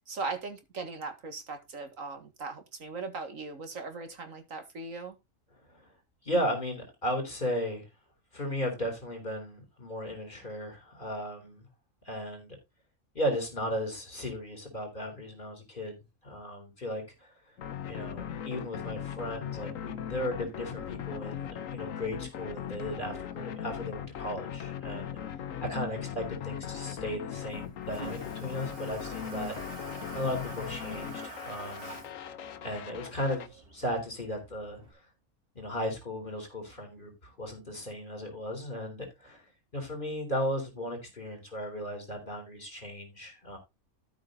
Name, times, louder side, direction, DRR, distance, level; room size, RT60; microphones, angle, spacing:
voice 1, 0.1-5.2, right 3 dB, 65° right, 7 dB, 2.1 m, -39 dB
voice 2, 6.2-7.8 8.3-11.7 12.0-12.6 13.1-16.0 16.2-17.0 17.9-25.2 25.6-29.5 30.1-32.0 32.6-34.8 35.6-39.4 39.7-43.6, equal, 35° left, 3 dB, 4.0 m, -35 dB
sound 1, 17.6-33.5, left 9 dB, 70° left, 1.2 m, -39 dB
Toilet flush, 22.7-34.9, right 2 dB, 40° right, 3.6 m, -49 dB
13.0 x 5.8 x 3.8 m, 0.23 s
omnidirectional pair, 1.5 m